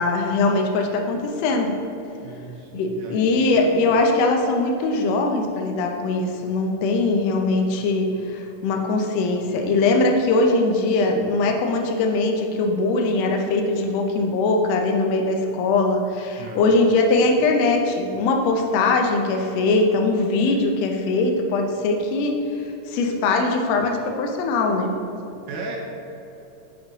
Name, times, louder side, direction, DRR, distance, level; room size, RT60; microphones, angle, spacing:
voice 1, 0.0-1.7 2.7-22.4 22.9-24.9, left 3 dB, 90° left, 3 dB, 1.4 m, -21 dB
voice 2, 2.2-3.3 3.6-3.9 16.4-16.7 25.5-25.8, right 3 dB, 80° right, 0 dB, 1.6 m, -36 dB
7.6 x 5.4 x 2.9 m, 2.9 s
omnidirectional pair, 3.8 m